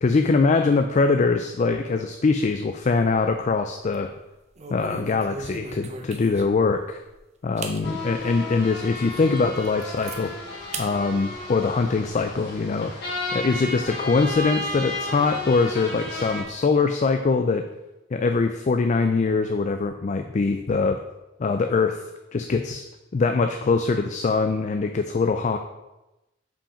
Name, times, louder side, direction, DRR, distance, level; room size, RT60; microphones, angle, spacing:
voice 1, 0.0-4.1 4.7-7.0 7.4-10.3 10.8-17.7 18.1-21.0 21.4-22.0 22.3-22.9 23.1-25.6, left 4 dB, 40° left, 7 dB, 0.4 m, -23 dB
sound 1, 2.7-3.4 3.8-4.0 4.6-6.6 7.1-7.2 7.6-7.8 8.3-8.4 8.9-9.0 9.4-10.2 10.7-10.9 11.3-12.2, right 4 dB, 35° right, 0.7 m, -38 dB
sound 2, 7.8-16.4, left 2 dB, 55° left, 2.5 m, -33 dB
5.7 x 5.2 x 4.9 m, 0.98 s
head